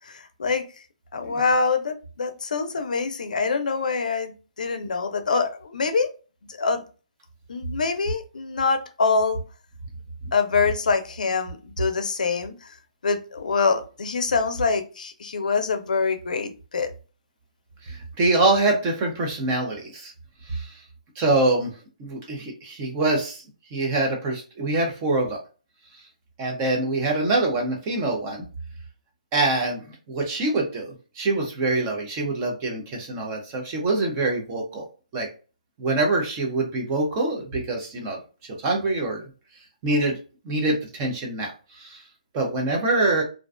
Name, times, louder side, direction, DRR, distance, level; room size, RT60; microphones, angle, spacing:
voice 1, 0.1-0.7 1.1-6.1 6.6-6.8 7.5-9.4 10.3-12.7 13.0-16.9, left 4 dB, 80° left, 0.5 m, -25 dB
voice 2, 17.8-20.1 20.5-20.7 21.2-21.7 22.0-23.4 23.7-25.4 26.4-28.4 29.3-34.9 35.1-35.3 35.8-38.2 38.6-39.2 39.8-40.2 40.4-42.0 42.3-43.2, right 2 dB, 15° right, 0.4 m, -25 dB
2.4 x 2.2 x 2.3 m
hypercardioid pair, 175°, 4 cm